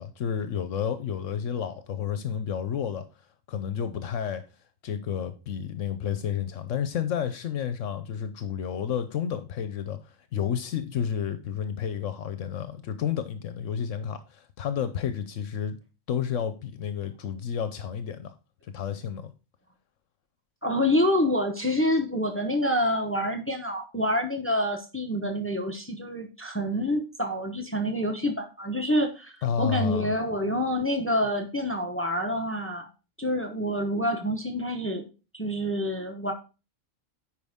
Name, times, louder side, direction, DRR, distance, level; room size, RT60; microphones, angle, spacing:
voice 1, 0.0-3.0 3.5-4.4 4.8-15.8 16.1-18.3 18.7-19.3 29.4-30.1, left 8 dB, 75° left, 1.1 m, -31 dB
voice 2, 20.6-29.3 29.6-32.9 33.2-35.0 35.3-36.3, left 1 dB, 10° left, 0.9 m, -27 dB
9.4 x 4.9 x 3.5 m
omnidirectional pair, 1.3 m